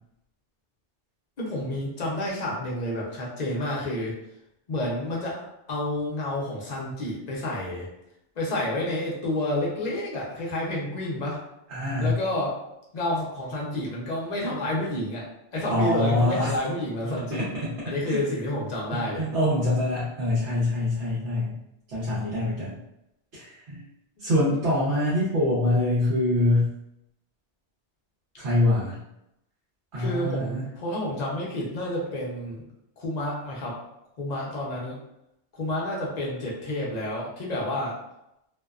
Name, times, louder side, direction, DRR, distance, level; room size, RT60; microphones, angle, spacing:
voice 1, 1.4-4.1 4.7-7.9 8.4-11.4 12.0-12.6 12.9-17.4 17.9-19.3 30.0-32.6 33.0-33.8 34.2-35.0 35.5-38.0, left 1 dB, 45° left, -4 dB, 0.6 m, -29 dB
voice 2, 11.7-12.1 15.7-16.5 17.3-17.7 18.0-18.2 18.9-21.6 21.9-22.8 23.3-23.8 24.2-26.7 28.4-29.0 29.9-30.7, left 1 dB, 70° right, -8 dB, 1.0 m, -24 dB
2.6 x 2.1 x 2.3 m, 0.85 s
omnidirectional pair, 1.2 m